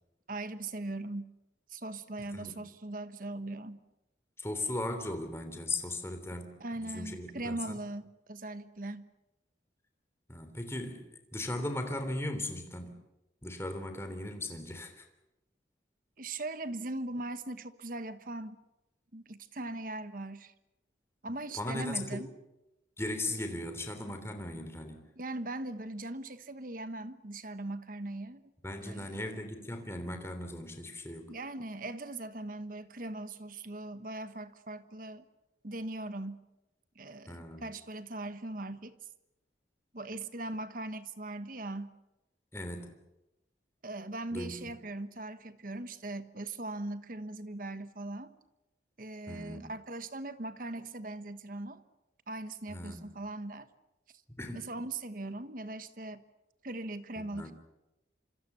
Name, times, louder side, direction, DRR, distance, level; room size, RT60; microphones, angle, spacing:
voice 1, 0.3-1.3 1.7-3.8 6.6-9.1 16.2-18.6 19.1-20.5 21.2-22.3 25.2-28.5 28.8-29.2 31.3-35.2 35.6-36.4 36.9-39.0 39.9-41.9 43.8-48.3 49.0-51.8 52.3-53.7 54.5-56.2 56.6-57.5, right 2 dB, 45° right, 1.3 m, -40 dB
voice 2, 4.4-7.8 10.3-13.0 13.4-15.1 21.6-22.3 23.0-25.0 28.6-31.3 37.3-37.7 42.5-42.9 44.3-44.7 49.3-49.7 52.7-53.1 54.4-54.7 57.3-57.5, left 1 dB, 15° left, 3.3 m, -38 dB
26.5 x 26.0 x 6.9 m
head